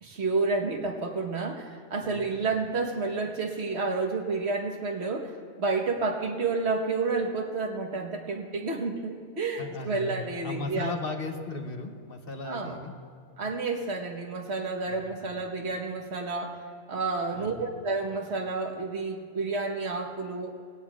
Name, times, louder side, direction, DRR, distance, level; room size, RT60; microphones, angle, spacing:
voice 1, 0.0-10.9 12.4-12.8 13.4-20.5, right 3 dB, 70° right, 3 dB, 1.4 m, -30 dB
voice 2, 9.6-10.2 10.4-12.9 14.9-15.2 17.3-17.7, left 3 dB, 55° left, 5 dB, 1.1 m, -36 dB
19.0 x 17.0 x 2.4 m, 2.2 s
omnidirectional pair, 1.2 m